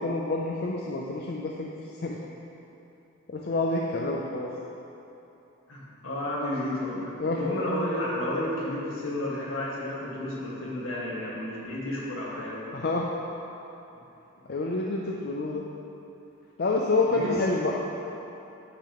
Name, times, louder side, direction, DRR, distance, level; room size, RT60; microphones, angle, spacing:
voice 1, 0.0-1.7 2.0-2.2 3.3-4.5 7.2-7.4 12.7-13.1 14.5-15.7 16.6-17.8, left 2 dB, 50° left, -1 dB, 0.4 m, -28 dB
voice 2, 5.7-7.1 7.3-12.5 17.1-17.3, left 1 dB, 70° left, -6 dB, 1.7 m, -31 dB
8.6 x 7.0 x 3.0 m, 2.9 s
head